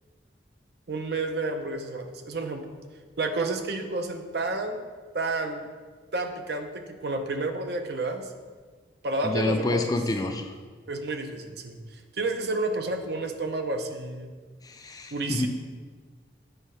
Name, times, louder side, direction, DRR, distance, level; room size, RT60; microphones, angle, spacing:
voice 1, 0.9-2.7 3.2-4.8 5.1-5.6 6.1-8.3 9.0-9.8 10.9-11.8 12.2-14.3 15.1-15.5, right 2 dB, 65° right, 6 dB, 0.6 m, -30 dB
voice 2, 9.2-10.5 14.6-15.5, left 2 dB, 20° left, 5 dB, 0.4 m, -28 dB
8.0 x 3.7 x 5.5 m, 1.5 s
head